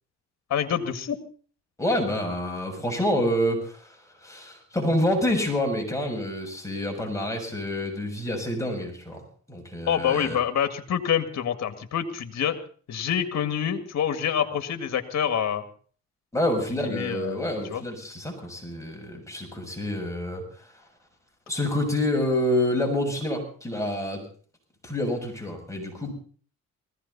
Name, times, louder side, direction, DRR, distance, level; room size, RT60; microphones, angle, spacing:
voice 1, 0.5-1.2 9.9-12.6 12.9-15.6 16.9-17.8, left 8 dB, 60° left, 8 dB, 2.1 m, -27 dB
voice 2, 1.8-10.4 16.3-20.7 21.5-24.2 24.8-26.1, left 1 dB, 10° left, 1 dB, 7.1 m, -28 dB
20.0 x 16.0 x 4.2 m, 0.43 s
cardioid pair, 90°, 30 cm